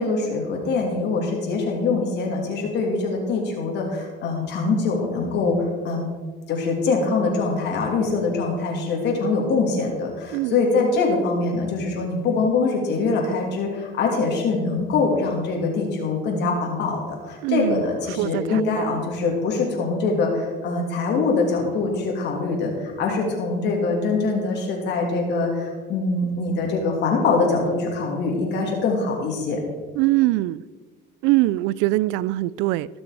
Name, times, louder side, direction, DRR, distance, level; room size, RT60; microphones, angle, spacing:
voice 1, 0.0-6.0 6.5-29.6, left 3 dB, 60° left, 2.7 m, -23 dB
voice 2, 17.4-17.8 18.2-18.9 30.0-30.6 31.2-32.9, right 18 dB, 80° right, 0.4 m, -22 dB
17.0 x 6.3 x 5.0 m
cardioid pair, 115°, 20 cm